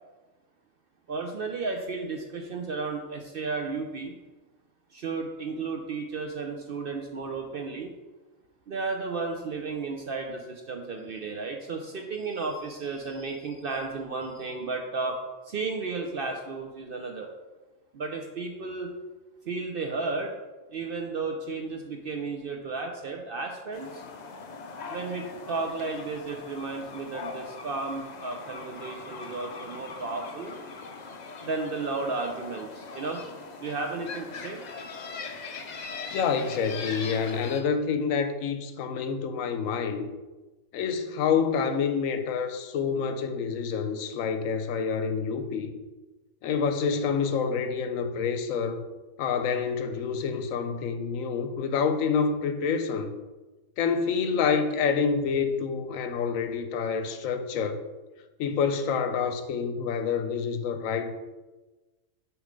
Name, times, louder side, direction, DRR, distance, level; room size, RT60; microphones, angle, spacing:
voice 1, 1.1-4.2 4.9-7.9 8.7-15.2 15.4-17.3 17.9-18.9 19.5-20.3 20.7-24.0 24.9-30.5 31.4-33.2 33.6-34.6, right 4 dB, 60° right, 2 dB, 0.6 m, -33 dB
sound 1, 23.7-37.6, left 4 dB, 60° left, 0.4 m, -41 dB
voice 2, 36.1-40.1 40.7-45.7 46.4-48.8 49.2-53.1 53.8-57.8 58.4-61.1, left 6 dB, 80° left, 8 dB, 1.0 m, -27 dB
6.4 x 3.1 x 5.0 m, 1.2 s
omnidirectional pair, 1.4 m